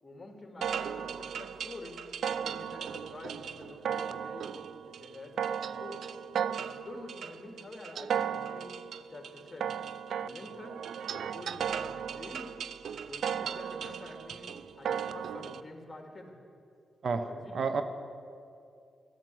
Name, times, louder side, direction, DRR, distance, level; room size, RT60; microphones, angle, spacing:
voice 1, 0.0-2.0 2.3-4.5 4.9-6.0 6.6-8.7 9.1-9.7 10.2-10.8 11.1-12.5 13.0-14.5 14.8-16.4 17.2-17.6, left 2 dB, 25° left, 3 dB, 2.6 m, -47 dB
Metal + Decay (Metal Reel), 0.6-15.6, right 8 dB, 80° right, 0.4 m, -36 dB
voice 2, 17.0-17.8, right 5 dB, 60° right, 9 dB, 0.9 m, -31 dB
12.5 x 12.5 x 7.9 m, 2.4 s
cardioid pair, 70°, 0 cm